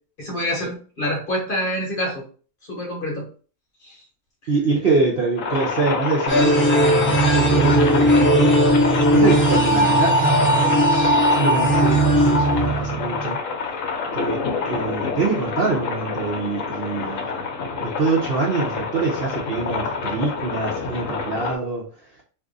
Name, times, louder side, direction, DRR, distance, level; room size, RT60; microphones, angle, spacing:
voice 1, 0.2-2.2 2.6-3.2 3.8-4.0 4.4-4.5, left 1 dB, 40° left, -1 dB, 0.9 m, -27 dB
voice 2, 4.5-8.6 9.1-13.4 14.1-17.4 17.8-21.9, right 3 dB, 55° right, -4 dB, 0.7 m, -25 dB
sound 1, 5.4-21.6, left 5 dB, 65° left, 1.0 m, -27 dB
sound 2, 6.3-13.3, right 1 dB, 15° left, 0.4 m, -18 dB
2.6 x 2.4 x 3.7 m, 0.40 s
omnidirectional pair, 1.6 m